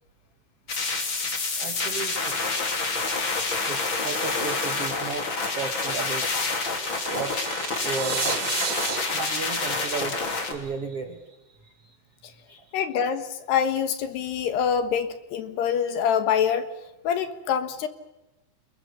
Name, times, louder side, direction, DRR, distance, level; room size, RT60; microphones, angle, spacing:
sound 1, 0.7-10.5, left 3 dB, 30° left, 2.9 m, -28 dB
voice 1, 1.6-2.4 3.6-5.3 5.5-6.3 7.1-7.3 7.8-8.6 9.1-10.2 10.5-11.2 11.8-11.9 12.5-12.6, right 4 dB, 70° right, 7 dB, 1.4 m, -34 dB
sound 2, 6.9-10.9, right 7 dB, 50° right, 2.0 m, -33 dB
voice 2, 12.7-16.7 17.0-17.9, left 8 dB, 65° left, 10 dB, 3.2 m, -25 dB
29.5 x 22.0 x 6.9 m, 0.97 s
omnidirectional pair, 5.7 m